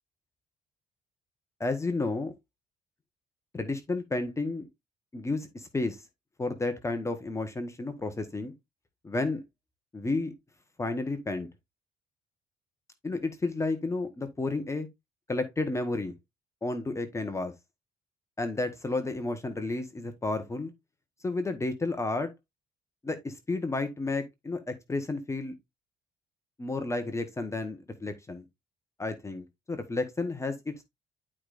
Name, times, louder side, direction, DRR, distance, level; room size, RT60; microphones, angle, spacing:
voice 1, 1.6-2.3 3.5-4.6 5.1-6.0 6.4-8.5 9.0-9.4 9.9-10.3 10.8-11.5 13.0-14.9 15.3-16.1 16.6-17.5 18.4-20.7 21.2-22.3 23.0-25.5 26.6-28.4 29.0-30.8, left 2 dB, 15° left, 1.1 m, -31 dB
11.0 x 4.9 x 2.5 m
cardioid pair, 130°, 17 cm